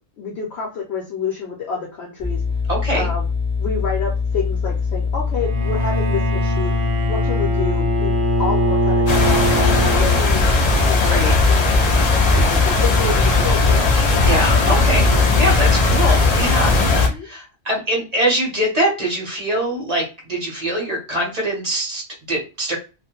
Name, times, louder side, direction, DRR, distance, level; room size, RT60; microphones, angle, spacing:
voice 1, 0.2-2.4 2.9-3.2 3.6-6.7 7.1-11.9 12.4-13.9 16.8-17.3, left 5 dB, 65° left, -1 dB, 0.8 m, -29 dB
sound 1, 2.2-16.4, left 5 dB, 10° left, 0.4 m, -23 dB
voice 2, 2.7-3.1 11.1-11.3 14.2-22.0 22.3-22.8, right 1 dB, 35° right, -1 dB, 0.9 m, -23 dB
Bowed string instrument, 5.3-10.6, right 1 dB, 65° right, 0.8 m, -22 dB
sound 2, 9.1-17.1, left 2 dB, 80° left, 0.3 m, -17 dB
2.3 x 2.1 x 2.9 m, 0.31 s
omnidirectional pair, 1.3 m